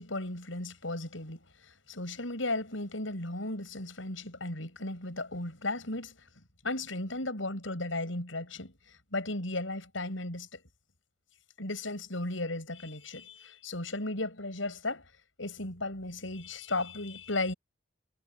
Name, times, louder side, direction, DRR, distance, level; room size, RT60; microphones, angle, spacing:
voice 1, 0.0-6.3 6.6-10.6 11.6-15.0 15.4-17.5, left 2 dB, 90° left, 7.6 m, -35 dB
head